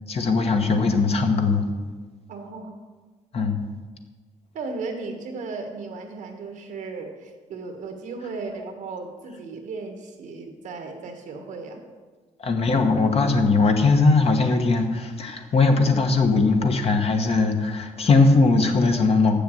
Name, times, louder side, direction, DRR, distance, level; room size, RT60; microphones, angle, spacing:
voice 1, 0.1-1.6 3.3-3.6 12.4-19.4, left 3 dB, 50° left, 5 dB, 1.3 m, -20 dB
voice 2, 2.3-2.8 4.5-11.8, right 4 dB, 85° right, 4 dB, 1.5 m, -35 dB
7.2 x 7.0 x 7.7 m, 1.4 s
cardioid pair, 85°, 13 cm